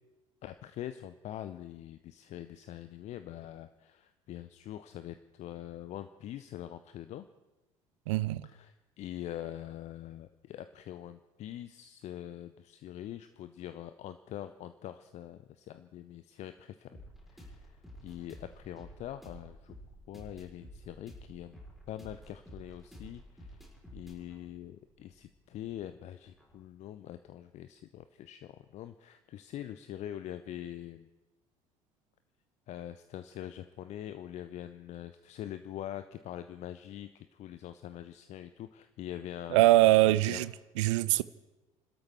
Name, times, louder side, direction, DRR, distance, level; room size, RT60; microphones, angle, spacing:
voice 1, 0.4-7.3 8.5-16.9 17.3-19.8 20.1-21.6 21.9-23.6 23.9-31.1 32.7-40.4, left 12 dB, 40° left, 0.6 m, -44 dB
voice 2, 8.1-8.5 39.5-40.5 40.8-41.2, right 17 dB, 60° right, 0.5 m, -23 dB
sound 1, 16.9-26.6, equal, ahead, 4.2 m, -52 dB
30.0 x 13.0 x 3.5 m
figure-of-eight pair, 60°, 17 cm